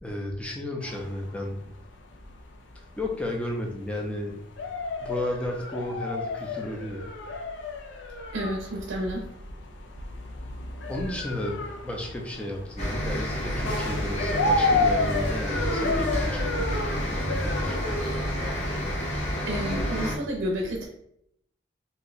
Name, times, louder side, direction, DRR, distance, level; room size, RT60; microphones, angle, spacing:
voice 1, 0.0-1.7 2.8-4.4 5.0-7.0 10.9-17.9, left 1 dB, 5° left, 0 dB, 0.5 m, -33 dB
sound 1, 0.8-19.9, left 3 dB, 70° left, 0.4 m, -32 dB
voice 2, 8.3-9.3 19.5-20.9, equal, 90° right, -1 dB, 0.6 m, -30 dB
sound 2, 12.8-20.1, equal, 35° left, 0.8 m, -29 dB
2.8 x 2.2 x 3.9 m, 0.73 s
head